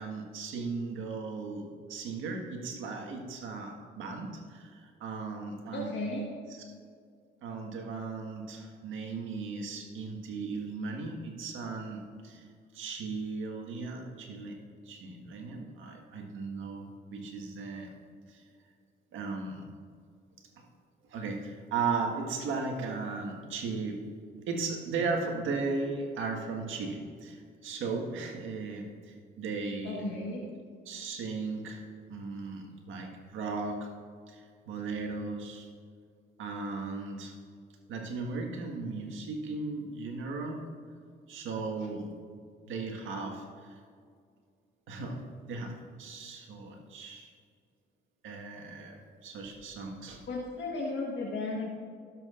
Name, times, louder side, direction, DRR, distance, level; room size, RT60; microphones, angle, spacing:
voice 1, 0.0-5.9 6.5-6.7 7.4-12.5 12.7-14.6 14.9-17.9 18.3-18.4 19.1-19.6 21.1-24.1 24.5-30.0 30.9-31.8 32.1-33.9 34.3-35.7 36.4-37.4 37.9-40.7 41.3-42.1 42.7-43.8 44.9-47.3 48.2-50.3, right 4 dB, 80° right, 1 dB, 1.7 m, -36 dB
voice 2, 5.7-6.2 29.8-30.5 50.3-51.7, left 2 dB, 70° left, -3 dB, 1.6 m, -34 dB
15.5 x 7.6 x 2.5 m, 2.1 s
cardioid pair, 90°, 20 cm